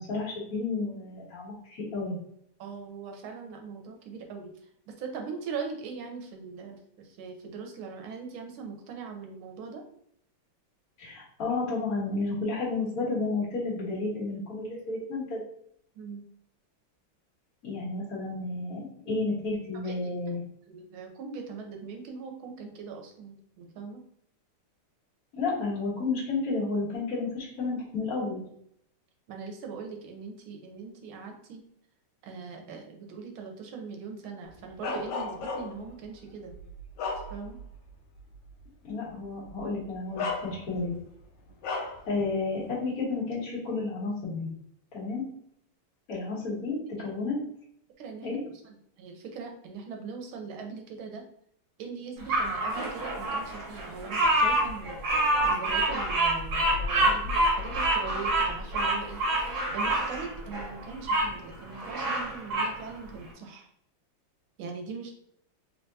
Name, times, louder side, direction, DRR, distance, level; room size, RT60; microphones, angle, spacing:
voice 1, 0.0-2.2 11.0-15.4 17.6-20.4 25.3-28.4 38.8-40.9 41.6-44.5 44.9-45.3 46.1-47.4 48.2-48.4, left 3 dB, 45° left, -7 dB, 1.6 m, -31 dB
voice 2, 2.6-4.5 5.0-6.8 7.2-9.8 16.0-16.2 19.8-20.1 20.7-24.0 29.3-31.6 32.2-36.6 37.3-37.6 39.0-39.1 47.0-47.1 48.0-51.2 51.8-55.0 55.4-63.7 64.6-65.2, right 5 dB, 75° right, 3 dB, 1.5 m, -41 dB
Bark, 34.8-35.9 36.5-37.7 38.2-38.3 39.5-39.6 40.2-40.9 41.6-42.1, left 3 dB, 75° left, 1.3 m, -34 dB
Bird vocalization bird call bird song, 52.3-61.3 61.7-62.8, right 1 dB, 55° right, 1.3 m, -27 dB
3.5 x 3.4 x 2.7 m, 0.69 s
omnidirectional pair, 2.4 m